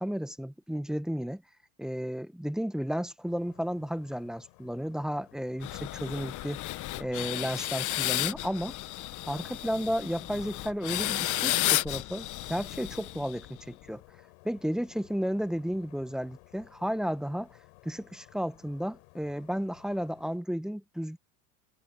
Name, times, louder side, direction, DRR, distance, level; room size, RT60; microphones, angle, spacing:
voice 1, 0.0-1.4 1.8-6.7 7.0-8.7 9.3-14.0 14.4-17.5 17.8-21.2, equal, ahead, 1.2 m, -33 dB
sound 1, 3.3-20.4, left 36 dB, 65° left, 5.0 m, -58 dB
sound 2, 5.6-13.6, left 16 dB, 40° left, 1.4 m, -32 dB
hypercardioid pair, 100°, 44 cm